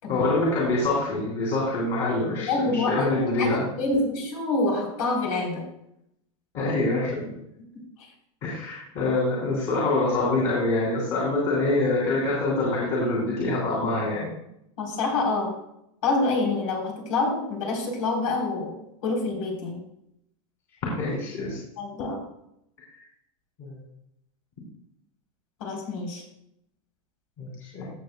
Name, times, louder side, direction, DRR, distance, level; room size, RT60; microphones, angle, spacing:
voice 1, 0.1-3.6 6.5-7.3 8.4-14.3 20.9-21.6 23.6-23.8 27.4-27.9, left 2 dB, 40° left, -5 dB, 3.1 m, -25 dB
voice 2, 2.4-5.7 14.8-15.6 16.0-18.7 19.0-19.8 21.8-22.2 25.6-26.2, left 3 dB, 75° left, 1 dB, 3.7 m, -27 dB
16.0 x 7.1 x 2.3 m, 0.78 s
supercardioid pair, 160°, 18 cm